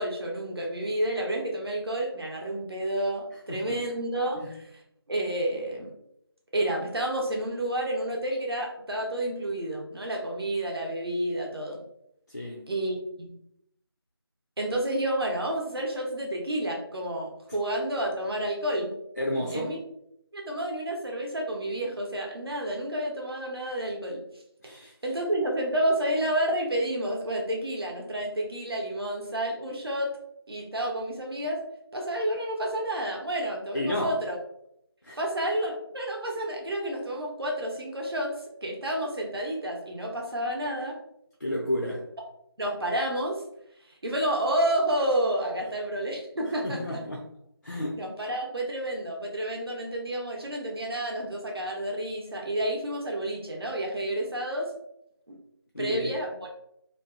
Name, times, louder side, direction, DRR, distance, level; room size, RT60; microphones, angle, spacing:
voice 1, 0.0-4.6 5.1-5.9 6.5-11.8 12.7-13.3 14.6-18.9 19.5-19.8 20.3-24.2 24.6-24.7 25.0-30.1 30.5-31.6 31.9-34.4 35.2-38.3 38.6-40.9 42.6-43.4 44.0-47.0 48.0-54.7 55.3-55.4 55.8-56.5, right 1 dB, 70° right, 0.7 m, -30 dB
voice 2, 12.3-12.7 19.2-19.8 24.6-24.9 33.7-34.2 35.0-35.2 41.4-42.1 46.6-47.3 47.6-48.1 55.7-56.2, left 1 dB, 45° left, 0.4 m, -31 dB
2.5 x 2.3 x 2.3 m
figure-of-eight pair, 170°, 13 cm